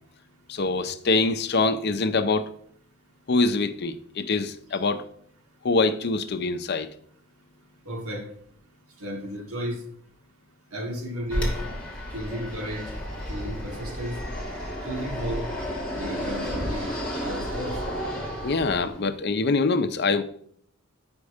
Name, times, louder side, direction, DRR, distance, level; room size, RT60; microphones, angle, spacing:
voice 1, 0.5-2.5 3.3-5.0 5.6-6.9 18.4-20.2, left 3 dB, 50° left, 10 dB, 0.5 m, -24 dB
voice 2, 7.8-8.3 9.0-9.8 10.7-11.5 12.1-12.9 13.3-14.2 14.8-15.4 16.0-16.9 17.2-17.8, equal, 85° right, 2 dB, 1.6 m, -33 dB
Fixed-wing aircraft airplane, 11.3-19.1, equal, 5° left, 2.3 m, -32 dB
8.2 x 5.2 x 4.9 m, 0.63 s
head